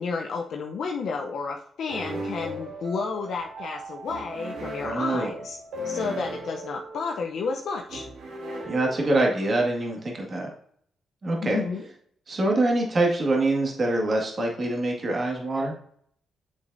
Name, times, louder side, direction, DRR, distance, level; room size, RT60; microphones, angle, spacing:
voice 1, 0.0-5.6 5.8-8.1 11.4-11.8, left 5 dB, 70° left, 1 dB, 0.7 m, -31 dB
sound 1, 1.9-9.6, right 1 dB, 75° right, 1.8 m, -37 dB
voice 2, 4.8-5.3 8.7-10.5 11.2-11.6 12.3-15.8, right 2 dB, 45° right, -1 dB, 1.9 m, -25 dB
7.1 x 6.5 x 2.7 m, 0.63 s
supercardioid pair, 50°, 0 cm